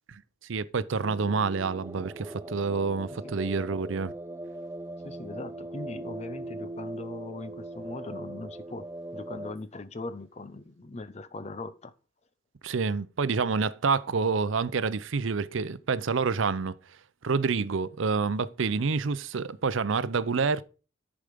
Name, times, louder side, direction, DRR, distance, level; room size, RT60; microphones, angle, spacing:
voice 1, 0.5-4.1 12.6-16.7 17.2-20.6, right 4 dB, 75° right, 0.6 m, -28 dB
sound 1, 1.0-9.5, right 1 dB, 10° right, 0.4 m, -40 dB
voice 2, 5.0-11.9, left 2 dB, 35° left, 0.6 m, -40 dB
10.0 x 4.9 x 5.1 m
head